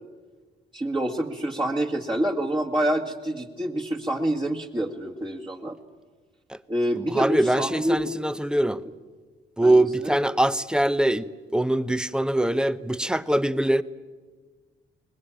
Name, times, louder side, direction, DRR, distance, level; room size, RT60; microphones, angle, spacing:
voice 1, 0.7-5.8 6.7-8.1 9.6-10.2, right 1 dB, 25° right, 1.9 m, -27 dB
voice 2, 7.0-8.8 9.6-11.3 11.5-13.8, right 1 dB, 5° right, 0.8 m, -23 dB
23.5 x 20.5 x 9.0 m
cardioid pair, 90°, 20 cm